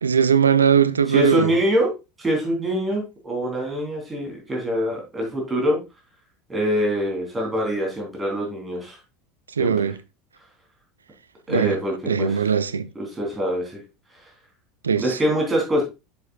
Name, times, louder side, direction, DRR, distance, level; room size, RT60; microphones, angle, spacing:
voice 1, 0.0-1.5 9.6-10.0 11.5-11.8 12.1-12.9 14.8-15.2, right 7 dB, 80° right, 0.4 m, -20 dB
voice 2, 1.1-1.9 2.2-5.8 6.5-9.0 9.6-9.9 11.5-12.4 13.0-13.8 15.0-15.8, equal, 15° right, 3.3 m, -24 dB
7.4 x 7.1 x 2.3 m
figure-of-eight pair, 75°, 0 cm